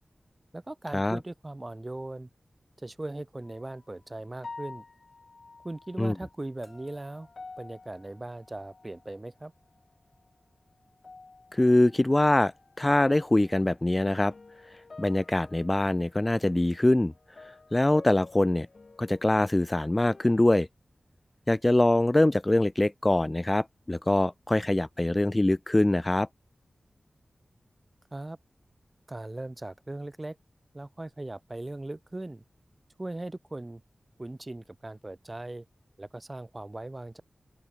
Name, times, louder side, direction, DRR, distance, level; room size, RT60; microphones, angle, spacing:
voice 1, 0.5-2.3 2.8-4.8 5.6-7.3 7.6-9.5 28.1-28.4 29.1-30.4 30.7-32.4 33.0-33.8 34.2-35.7 36.0-37.2, right 2 dB, 30° right, 5.6 m, -39 dB
sound 1, 3.4-3.8 4.4-9.3 9.6-10.4 10.8-20.5, left 3 dB, 60° left, 7.8 m, -50 dB
voice 2, 11.5-12.5 12.8-14.3 15.0-17.1 17.7-18.7 19.0-20.7 21.5-26.3, left 1 dB, 25° left, 0.6 m, -23 dB
open air
cardioid pair, 45°, 0 cm